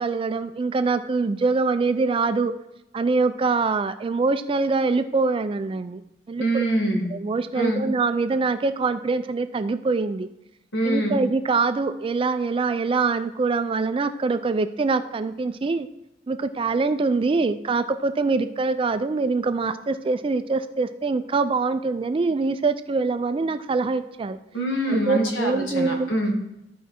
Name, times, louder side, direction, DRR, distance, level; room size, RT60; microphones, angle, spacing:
voice 1, 0.0-2.5 2.9-6.0 6.3-6.6 7.1-10.3 10.8-15.9 16.3-24.4 24.9-26.1, right 4 dB, 30° right, 11 dB, 0.3 m, -24 dB
voice 2, 6.4-7.1 7.5-7.9 10.7-11.3 24.5-26.3, right 1 dB, 80° left, 2 dB, 1.8 m, -24 dB
13.5 x 4.6 x 4.2 m, 0.88 s
head